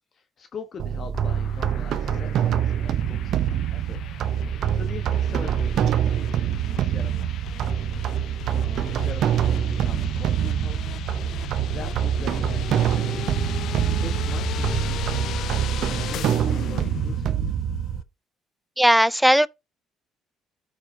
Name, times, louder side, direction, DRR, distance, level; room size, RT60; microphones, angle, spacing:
voice 1, 0.1-4.0 4.7-7.1 8.5-10.8 11.7-13.3 14.0-17.4, left 5 dB, 50° left, 1.1 m, -42 dB
sound 1, 0.8-18.0, right 10 dB, 70° right, 0.6 m, -25 dB
sound 2, 1.1-18.0, left 9 dB, 70° left, 0.7 m, -35 dB
voice 2, 18.8-19.5, equal, ahead, 0.5 m, -17 dB
14.5 x 5.1 x 2.7 m
cardioid pair, 90°, 0 cm